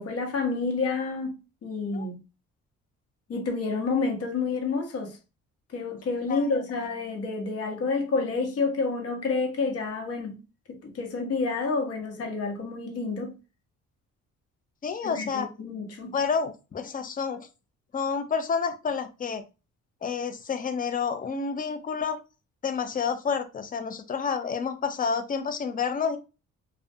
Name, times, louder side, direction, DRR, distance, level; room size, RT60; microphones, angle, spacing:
voice 1, 0.0-1.4 1.6-2.2 3.3-5.2 5.7-10.4 10.7-13.4 15.0-16.1, left 4 dB, 55° left, 0.9 m, -29 dB
voice 2, 14.8-15.5 16.1-17.5 17.9-19.4 20.0-22.2 22.6-26.2, left 6 dB, 30° left, 0.4 m, -29 dB
2.4 x 2.1 x 2.6 m
cardioid pair, 90°, 30 cm